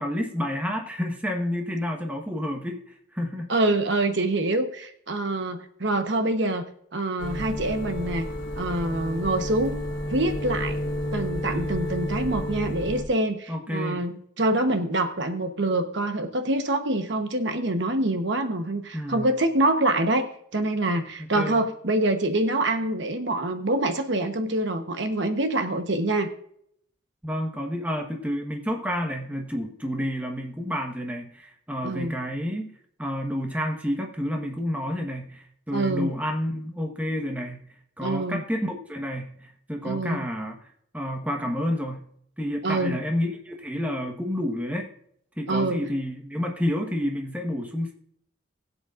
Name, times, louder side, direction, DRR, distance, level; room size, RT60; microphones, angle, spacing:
voice 1, 0.0-3.5 13.5-14.0 18.9-19.3 21.2-21.6 27.2-32.7 33.0-37.6 38.0-40.6 40.9-42.1 42.4-44.9 45.4-47.9, equal, 5° right, 1 dB, 1.2 m, -30 dB
voice 2, 3.5-6.7 6.9-8.3 8.6-9.8 10.1-10.8 11.1-26.3 31.8-32.2 35.7-36.1 38.0-38.4 39.8-40.2 42.6-43.0 45.5-45.8, right 1 dB, 60° right, 7 dB, 1.0 m, -25 dB
sound 1, 7.2-13.0, equal, 60° left, 1.7 m, -31 dB
20.5 x 8.2 x 2.5 m, 0.69 s
head